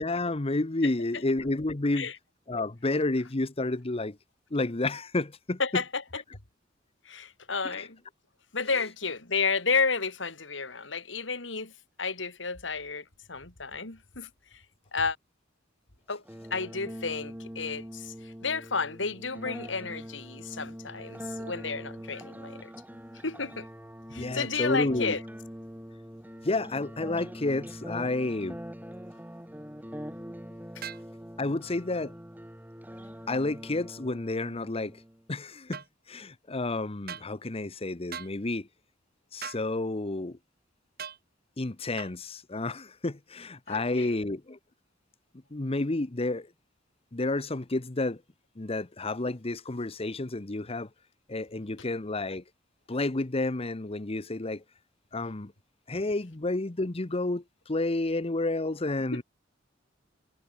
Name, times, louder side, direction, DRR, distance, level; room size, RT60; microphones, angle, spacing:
voice 1, 0.0-2.1 2.5-4.2 4.5-5.8 7.6-7.9 24.1-25.2 26.4-28.6 31.4-32.1 33.3-35.0 35.3-38.7 39.3-40.4 41.6-44.6 45.5-46.5 47.1-48.2 48.6-50.9 51.3-52.4 52.9-54.6 55.1-55.5 55.9-59.2, left 2 dB, 30° left, 0.9 m, -30 dB
voice 2, 5.6-6.0 7.1-8.0 8.5-11.7 12.0-14.3 14.9-15.2 16.1-16.2 16.5-18.1 18.4-22.7 23.2-23.7 24.1-25.2 30.8-30.9 43.7-44.2 59.1-59.2, left 4 dB, 75° left, 3.4 m, -31 dB
sound 1, 16.3-35.2, equal, 10° right, 5.3 m, -43 dB
sound 2, 30.8-31.1 35.7-35.9 37.1-37.3 38.1-38.3 39.4-39.7 41.0-41.2 42.0-42.1, right 7 dB, 55° right, 3.3 m, -39 dB
head